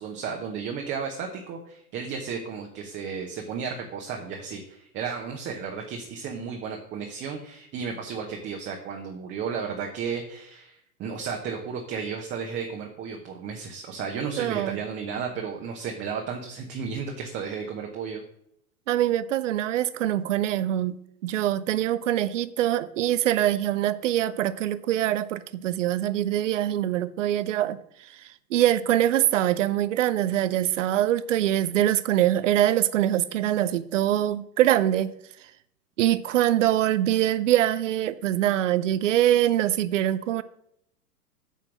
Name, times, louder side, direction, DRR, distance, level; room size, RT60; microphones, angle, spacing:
voice 1, 0.0-18.2, right 6 dB, 20° right, 1.0 m, -33 dB
voice 2, 14.4-14.8 18.9-21.0 21.2-35.1 36.0-40.4, right 12 dB, 50° right, 0.7 m, -24 dB
9.0 x 4.5 x 6.3 m
figure-of-eight pair, 105°, 48 cm